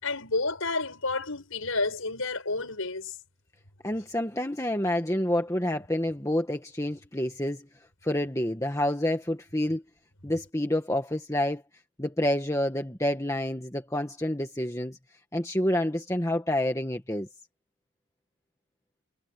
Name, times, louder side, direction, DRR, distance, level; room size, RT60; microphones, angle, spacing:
voice 1, 0.0-3.2, left 3 dB, 75° left, 6.1 m, -30 dB
voice 2, 3.8-7.7 8.0-9.8 10.2-11.6 12.0-15.0 15.3-17.3, left 1 dB, 15° left, 1.6 m, -28 dB
head